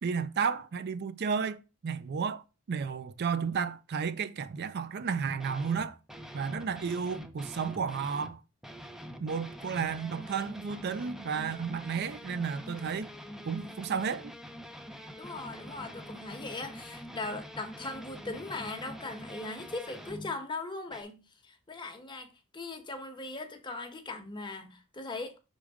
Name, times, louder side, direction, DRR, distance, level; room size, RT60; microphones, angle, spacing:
voice 1, 0.0-6.0 6.3-8.4 9.2-13.1 13.4-14.3, right 6 dB, 50° right, 0.4 m, -32 dB
sound 1, 5.3-8.4 8.6-20.4 20.9-21.0, equal, ahead, 0.6 m, -45 dB
voice 2, 15.2-25.4, left 3 dB, 20° left, 1.1 m, -39 dB
6.3 x 3.5 x 4.8 m
head